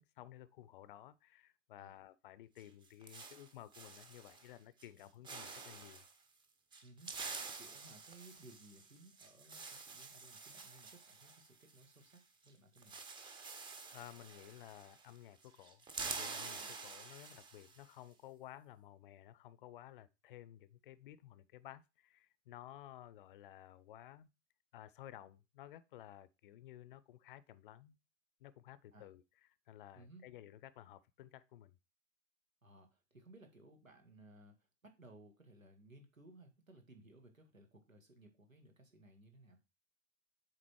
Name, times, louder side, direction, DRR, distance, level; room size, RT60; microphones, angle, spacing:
voice 1, 0.0-6.0 13.9-24.3 24.7-28.0 28.4-29.2 29.7-31.8, left 13 dB, 40° left, 0.6 m, -55 dB
sound 1, 2.6-4.5 4.8-5.0 5.2-6.1 6.7-12.2 12.4-12.5 12.8-15.2 15.4-17.8, right 4 dB, 10° right, 0.8 m, -48 dB
voice 2, 6.8-7.1 7.6-13.0 16.6-16.8 28.9-29.1 30.0-30.2 32.6-39.6, right 2 dB, 90° right, 2.0 m, -60 dB
7.6 x 4.0 x 4.6 m
figure-of-eight pair, 110°, 39 cm